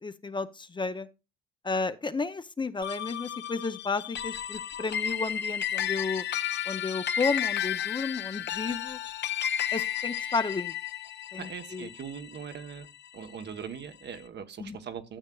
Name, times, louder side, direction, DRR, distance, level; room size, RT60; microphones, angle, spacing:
voice 1, 0.0-1.1 1.6-6.2 6.7-9.0 9.7-10.7 11.3-11.9 14.6-14.8, left 4 dB, 25° left, 11 dB, 0.6 m, -32 dB
sound 1, 2.8-13.4, left 10 dB, 60° left, 0.9 m, -33 dB
voice 2, 11.3-12.9 13.1-15.2, right 7 dB, 60° right, 8 dB, 1.1 m, -40 dB
12.5 x 7.2 x 2.3 m, 0.29 s
cardioid pair, 90°, 20 cm